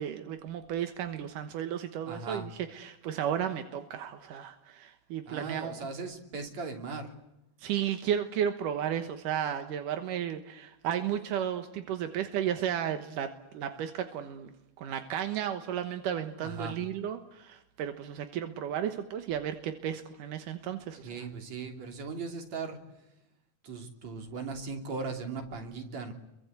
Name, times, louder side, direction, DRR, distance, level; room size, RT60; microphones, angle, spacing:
voice 1, 0.0-5.7 7.6-13.3 13.5-14.5 14.8-21.1, right 9 dB, 85° right, 7 dB, 2.8 m, -33 dB
voice 2, 2.0-2.5 5.3-7.1 16.4-16.7 21.0-22.8 23.6-26.1, right 4 dB, 60° right, 4 dB, 4.2 m, -38 dB
29.0 x 23.5 x 8.2 m, 0.88 s
omnidirectional pair, 3.6 m